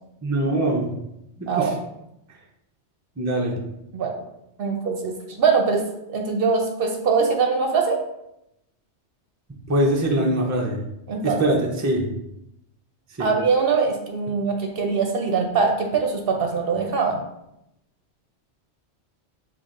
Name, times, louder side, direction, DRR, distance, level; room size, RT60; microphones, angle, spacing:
voice 1, 0.2-0.9 1.4-1.7 3.2-3.6 9.7-10.8 11.2-12.1 13.2-13.3, right 1 dB, 20° right, 0 dB, 0.5 m, -22 dB
voice 2, 4.6-5.8 6.1-8.0 11.1-11.4 13.2-17.2, right 5 dB, 60° right, 3 dB, 0.8 m, -22 dB
6.9 x 3.0 x 2.5 m, 0.84 s
omnidirectional pair, 1.2 m